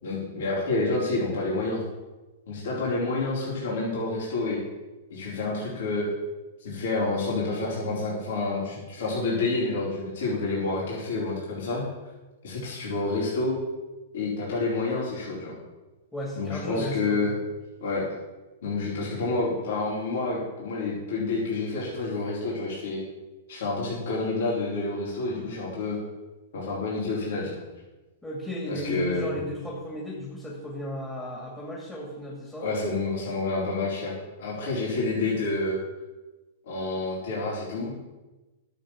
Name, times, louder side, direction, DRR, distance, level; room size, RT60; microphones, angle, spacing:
voice 1, 0.0-1.8 2.5-4.6 5.1-6.0 6.6-11.8 12.4-13.5 14.1-15.6 16.4-17.3 17.8-18.1 18.6-23.0 23.5-26.0 26.5-27.6 28.7-29.3 32.6-35.8 36.7-37.9, left 3 dB, 70° left, -6 dB, 4.5 m, -28 dB
voice 2, 16.1-17.3 28.2-32.7, equal, 5° left, -4 dB, 2.3 m, -35 dB
11.5 x 7.5 x 7.5 m, 1.1 s
hypercardioid pair, 150°, 0 cm